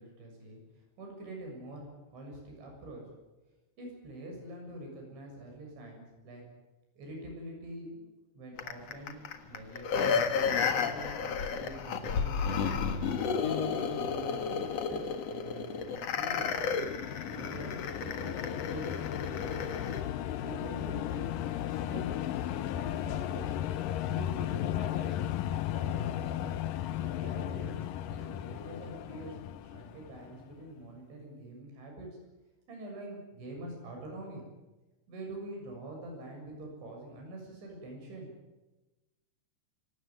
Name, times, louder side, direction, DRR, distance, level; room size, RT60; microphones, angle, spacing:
voice 1, 0.0-3.0 3.8-6.4 7.0-12.6 13.2-16.6 17.2-19.6 20.4-23.5 24.0-25.2 25.7-26.5 27.0-29.4 29.6-32.1 32.7-34.4 35.1-38.3, right 1 dB, 75° right, 1 dB, 9.4 m, -45 dB
sound 1, 8.6-20.0 20.5-20.6, left 6 dB, 55° left, 1.9 m, -32 dB
sound 2, 16.0-30.5, left 12 dB, 90° left, 1.9 m, -35 dB
26.5 x 18.0 x 9.6 m, 1.1 s
omnidirectional pair, 5.2 m